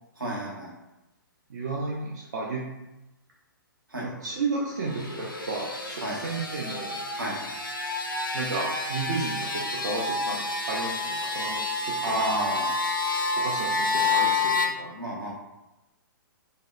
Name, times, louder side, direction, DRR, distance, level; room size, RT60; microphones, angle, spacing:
voice 1, 0.1-0.7 3.9-4.1 6.0-6.2 7.1-7.4 12.0-12.7 14.9-15.3, right 1 dB, 80° right, -5 dB, 0.9 m, -30 dB
voice 2, 1.5-2.7 4.0-7.0 8.3-10.4 10.7-12.0 13.4-14.9, right 3 dB, 55° right, -3 dB, 0.4 m, -33 dB
sound 1, 4.7-14.7, left 3 dB, 90° left, 0.4 m, -29 dB
2.6 x 2.0 x 2.3 m, 0.98 s
figure-of-eight pair, 120°, 11 cm